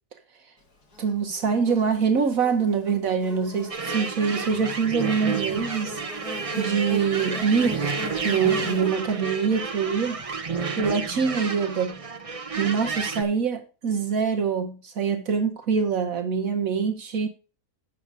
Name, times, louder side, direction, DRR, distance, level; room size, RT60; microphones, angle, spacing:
Buzz, 0.9-11.3, left 1 dB, 90° left, 3.0 m, -40 dB
voice 1, 1.0-6.0 6.6-8.0 8.2-10.2 10.8-12.0 12.6-17.3, right 6 dB, 65° right, 1.4 m, -24 dB
sound 1, 3.7-13.2, right 5 dB, 30° right, 0.7 m, -31 dB
8.3 x 6.7 x 5.0 m
omnidirectional pair, 1.6 m